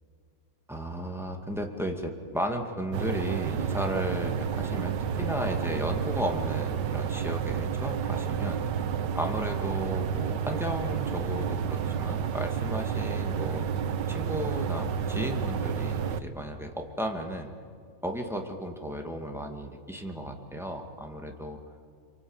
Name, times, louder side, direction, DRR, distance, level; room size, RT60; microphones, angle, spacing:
voice 1, 0.7-8.6 9.2-13.7 14.1-17.5 18.0-21.6, equal, ahead, 3 dB, 2.1 m, -34 dB
sound 1, 2.9-16.2, right 7 dB, 80° right, 1.5 m, -30 dB
27.0 x 23.5 x 8.9 m, 2.2 s
omnidirectional pair, 1.9 m